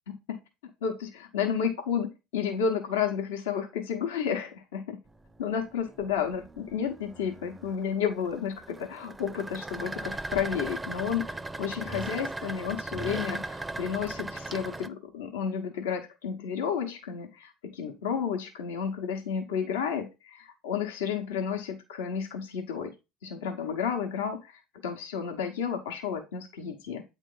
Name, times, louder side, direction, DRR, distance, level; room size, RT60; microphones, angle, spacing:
voice 1, 0.1-0.4 0.8-5.0 5.4-22.9 23.2-24.5 24.8-27.0, left 7 dB, 90° left, 4 dB, 0.9 m, -31 dB
sound 1, 5.1-14.9, right 2 dB, 15° right, 0.4 m, -38 dB
8.4 x 3.3 x 3.8 m, 0.25 s
supercardioid pair, 90°, 0 cm